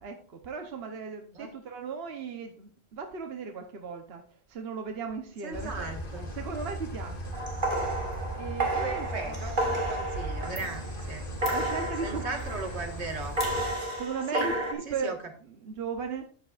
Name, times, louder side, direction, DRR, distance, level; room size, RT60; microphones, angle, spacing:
voice 1, 0.0-4.2 4.5-5.9 6.3-7.3 8.4-9.4 11.5-12.4 14.0-15.2 15.5-16.2, right 5 dB, 70° right, 4 dB, 1.2 m, -36 dB
voice 2, 5.4-6.3 8.8-11.3 12.0-13.4 14.3-14.5 14.9-15.2, right 3 dB, 85° right, 4 dB, 1.9 m, -37 dB
sound 1, 5.5-13.7, equal, 55° left, 2.0 m, -38 dB
sound 2, 7.3-11.0 11.4-12.9 13.4-14.7, right 1 dB, 50° right, 2.0 m, -31 dB
12.0 x 8.7 x 2.4 m, 0.42 s
omnidirectional pair, 1.1 m